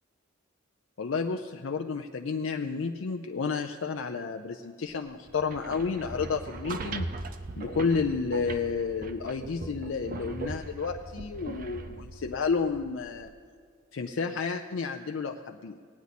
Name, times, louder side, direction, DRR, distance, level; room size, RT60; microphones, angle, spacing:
voice 1, 1.0-7.1 7.6-13.3 13.9-15.8, left 5 dB, 65° left, 4 dB, 0.5 m, -31 dB
sound 1, 5.3-13.3, right 2 dB, 40° right, 0.6 m, -39 dB
18.0 x 9.4 x 4.1 m, 2.1 s
head